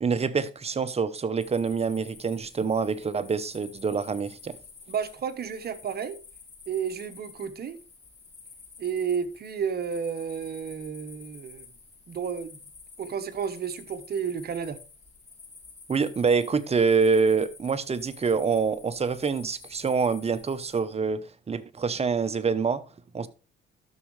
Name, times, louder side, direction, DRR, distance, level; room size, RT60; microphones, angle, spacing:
voice 1, 0.0-4.6 15.9-21.2 21.5-22.8 23.1-23.3, right 5 dB, 30° right, 0.8 m, -26 dB
sound 1, 1.4-20.8, left 4 dB, 35° left, 4.6 m, -50 dB
voice 2, 4.9-6.2 6.7-7.8 8.8-11.7 12.1-12.6 13.0-14.8 23.2-23.3, right 7 dB, 55° right, 1.1 m, -32 dB
12.5 x 6.3 x 3.2 m
cardioid pair, 90°, 20 cm